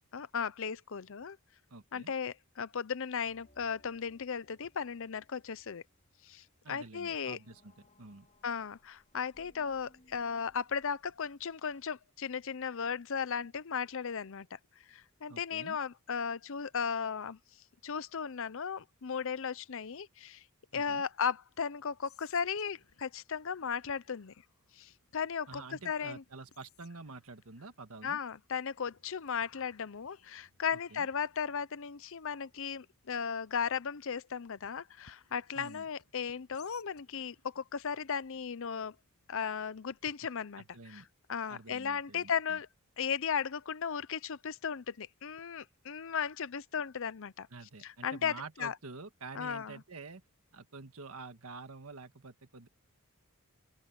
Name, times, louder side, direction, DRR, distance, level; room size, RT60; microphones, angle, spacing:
voice 1, 0.1-1.4 1.9-5.8 6.2-7.4 8.4-17.4 17.8-20.4 20.7-24.3 24.7-26.2 28.0-39.0 39.3-40.6 40.9-41.0 41.3-42.7 43.0-47.5 47.8-48.7 49.3-49.8, left 6 dB, 60° left, 0.7 m, -36 dB
voice 2, 1.7-2.1 6.6-8.3 15.3-15.8 20.7-21.0 25.5-28.2 30.7-31.1 35.5-35.8 40.6-41.1 41.5-42.6 47.5-50.2 50.5-52.7, right 3 dB, 75° right, 1.6 m, -48 dB
sound 1, 2.8-11.8, left 1 dB, 35° left, 4.2 m, -68 dB
Whispering, 21.8-39.3, left 6 dB, 80° left, 7.3 m, -66 dB
open air
head